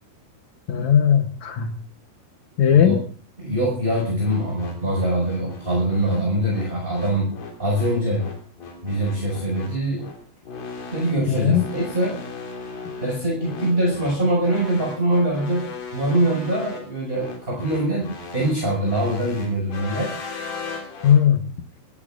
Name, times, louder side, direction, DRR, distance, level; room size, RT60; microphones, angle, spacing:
voice 1, 0.7-1.7 2.6-3.0 11.3-11.6 21.0-21.5, left 9 dB, 85° left, 6 dB, 1.6 m, -17 dB
voice 2, 3.4-8.3 8.8-10.1 10.9-12.2 13.0-20.1, right 1 dB, 10° right, -2 dB, 5.4 m, -23 dB
sound 1, 3.9-21.2, left 4 dB, 60° left, 4.7 m, -37 dB
26.0 x 14.5 x 2.5 m, 0.41 s
omnidirectional pair, 4.8 m